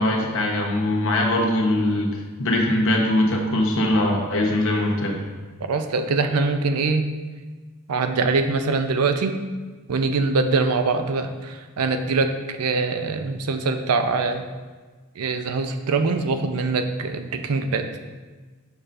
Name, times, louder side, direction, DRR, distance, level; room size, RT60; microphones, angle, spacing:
voice 1, 0.0-2.1 2.4-5.2, left 1 dB, 60° left, -1 dB, 1.0 m, -21 dB
voice 2, 5.7-7.1 7.9-9.4 9.9-12.3 12.6-14.4 15.2-17.9, right 4 dB, 90° right, 7 dB, 0.5 m, -23 dB
6.8 x 5.5 x 2.5 m, 1.4 s
head